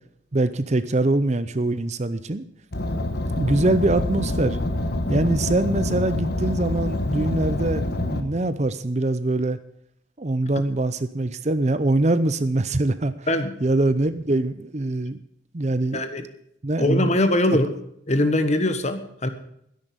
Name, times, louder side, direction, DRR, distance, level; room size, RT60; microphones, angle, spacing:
voice 1, 0.3-2.4 3.4-4.6 5.1-9.6 10.2-13.3 13.6-15.2 15.5-16.0 16.6-17.1 17.5-17.6, right 2 dB, 35° right, 13 dB, 0.6 m, -23 dB
Car, 2.7-8.2, left 1 dB, 50° left, 1.4 m, -26 dB
voice 2, 15.9-16.3 16.8-17.7 18.1-19.3, left 1 dB, 35° left, 9 dB, 1.3 m, -22 dB
12.5 x 10.5 x 6.8 m, 0.73 s
head